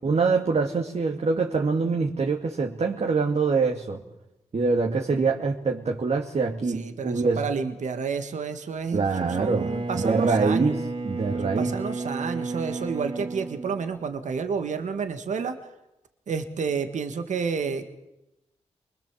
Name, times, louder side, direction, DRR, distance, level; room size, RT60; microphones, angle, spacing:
voice 1, 0.0-4.0 4.5-7.5 8.9-11.8, right 4 dB, 60° right, 2 dB, 2.3 m, -24 dB
voice 2, 6.7-10.7 11.6-15.6 16.3-17.9, right 5 dB, 80° right, 7 dB, 1.8 m, -30 dB
Bowed string instrument, 9.1-14.4, right 3 dB, 45° right, 2.4 m, -33 dB
28.0 x 21.5 x 7.5 m, 0.91 s
cardioid pair, 55°, 12 cm